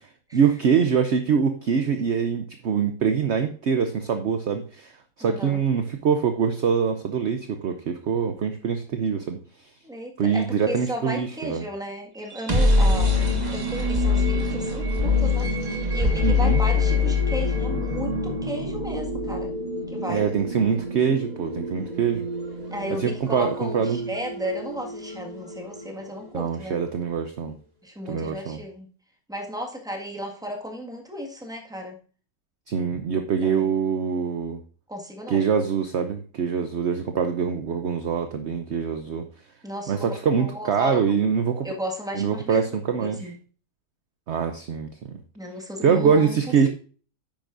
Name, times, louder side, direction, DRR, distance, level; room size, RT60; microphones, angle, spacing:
voice 1, 0.3-4.9 5.2-9.4 10.2-11.6 16.2-16.6 20.1-22.3 23.0-24.1 26.3-27.6 28.1-28.6 32.7-34.6 35.3-39.3 39.9-41.7 42.1-43.3 44.3-45.2 45.8-46.7, right 6 dB, 55° right, 7 dB, 0.8 m, -24 dB
voice 2, 5.2-5.6 9.8-13.1 13.5-19.5 19.9-20.2 22.7-26.8 27.8-28.9 29.3-32.0 33.4-33.8 34.9-35.4 39.6-41.2 41.6-42.7 43.0-43.3 45.3-46.7, equal, ahead, 1 dB, 1.6 m, -34 dB
sound 1, 12.2-26.0, left 3 dB, 25° right, 1.6 m, -25 dB
10.0 x 9.0 x 2.6 m, 0.40 s
omnidirectional pair, 1.9 m